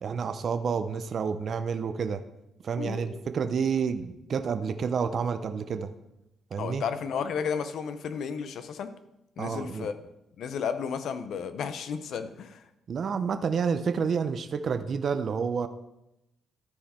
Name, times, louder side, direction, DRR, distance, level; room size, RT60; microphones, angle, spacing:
voice 1, 0.0-2.2 2.6-5.9 6.5-6.8 9.4-9.9 12.9-15.7, right 6 dB, 50° right, 9 dB, 0.6 m, -29 dB
voice 2, 2.8-3.2 6.6-8.9 9.4-10.0 10.4-12.6, left 6 dB, 70° left, 10 dB, 0.7 m, -33 dB
13.5 x 4.8 x 4.3 m, 0.88 s
cardioid pair, 90°, 0 cm